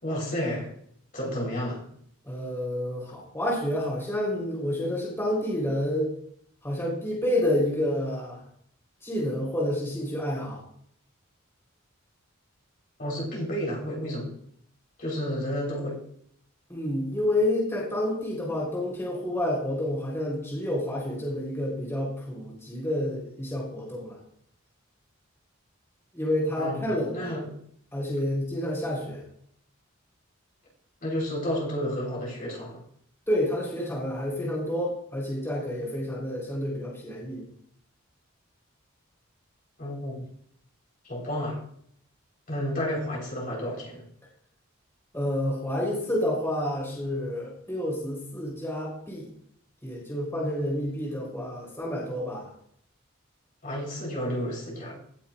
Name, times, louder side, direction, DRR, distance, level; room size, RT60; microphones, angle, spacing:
voice 1, 0.0-0.7 1.1-1.8 13.0-14.3 15.0-16.0 26.6-27.5 31.0-32.8 39.8-40.3 41.0-41.6 42.5-44.1 53.6-54.9, equal, 45° left, -3 dB, 4.1 m, -31 dB
voice 2, 2.2-6.1 6.6-8.4 9.0-10.6 16.7-24.2 26.1-27.3 27.9-29.2 33.3-37.4 45.1-49.3 49.8-52.5, left 1 dB, 15° left, -5 dB, 3.7 m, -29 dB
17.5 x 7.3 x 2.5 m, 0.65 s
head